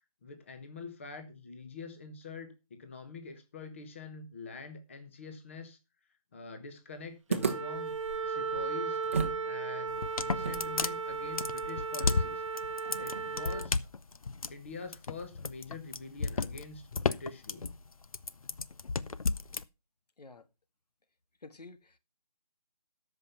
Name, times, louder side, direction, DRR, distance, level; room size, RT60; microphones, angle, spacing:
voice 1, 0.2-5.8 6.3-7.9 8.2-9.0 9.4-12.4 13.0-13.9 14.5-17.7, left 4 dB, 20° left, 1.0 m, -45 dB
sound 1, 7.3-9.5 9.7-9.8 10.4-13.5, right 5 dB, 20° right, 0.9 m, -37 dB
Wind instrument woodwind instrument, 7.4-13.7, right 5 dB, 50° right, 0.7 m, -36 dB
sound 2, 9.9-19.6, left 4 dB, 60° left, 0.8 m, -33 dB
voice 2, 21.4-22.0, left 3 dB, 85° left, 1.6 m, -50 dB
13.5 x 5.6 x 5.7 m
hypercardioid pair, 175°, 20 cm